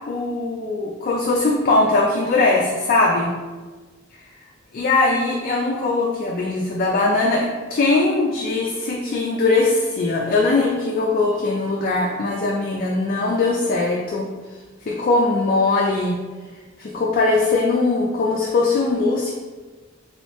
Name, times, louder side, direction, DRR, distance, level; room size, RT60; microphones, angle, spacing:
voice 1, 0.1-3.3 4.7-14.3 14.9-16.2 16.8-19.3, left 3 dB, 45° left, -2 dB, 0.4 m, -20 dB
3.1 x 3.0 x 3.1 m, 1.3 s
head